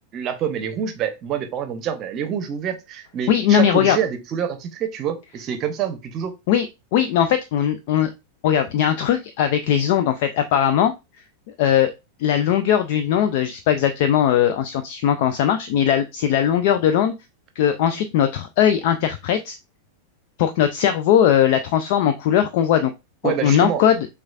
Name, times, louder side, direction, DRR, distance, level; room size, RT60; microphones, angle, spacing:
voice 1, 0.1-6.3 23.2-23.8, right 8 dB, 35° right, 0.7 m, -26 dB
voice 2, 3.3-4.0 6.5-6.7 6.9-8.1 8.4-10.9 11.6-11.9 12.2-17.1 17.6-19.6 20.4-22.9 23.2-24.1, left 9 dB, 50° left, 0.3 m, -19 dB
6.0 x 2.3 x 2.3 m
figure-of-eight pair, 90°, 0 cm